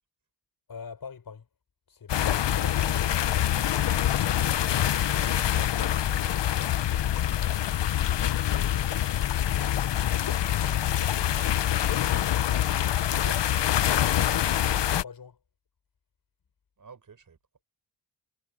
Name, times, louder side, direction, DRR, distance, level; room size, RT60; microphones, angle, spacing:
voice 1, 0.7-1.5 1.9-3.5 7.7-9.2 9.5-10.0 12.1-12.3 14.3-15.4, left 6 dB, 55° left, 6.6 m, -45 dB
sound 1, 2.1-15.0, left 11 dB, 75° left, 0.9 m, -25 dB
voice 2, 5.1-6.6 10.6-11.1 13.1-13.4 16.8-17.4, right 5 dB, 45° right, 5.4 m, -47 dB
wide cardioid pair, 155°, 43 cm